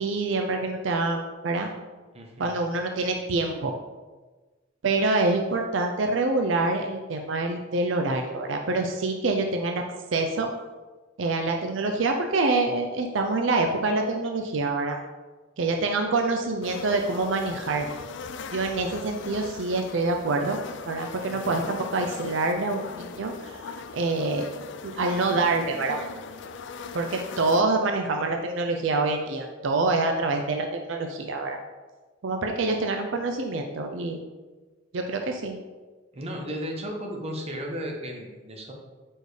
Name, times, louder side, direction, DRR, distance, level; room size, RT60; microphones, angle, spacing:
voice 1, 0.0-1.7 2.4-3.7 4.8-9.8 10.1-10.5 11.2-15.0 15.6-17.9 18.5-20.6 20.9-23.6 23.9-24.5 24.8-26.0 26.9-31.6 32.2-34.2 34.9-35.6, right 3 dB, 70° right, 3 dB, 0.5 m, -26 dB
voice 2, 2.1-2.5 21.3-21.4 36.1-38.7, equal, 35° right, 0 dB, 1.0 m, -34 dB
sound 1, 16.6-27.6, left 5 dB, 65° left, 0.4 m, -39 dB
4.9 x 4.4 x 4.8 m, 1.3 s
head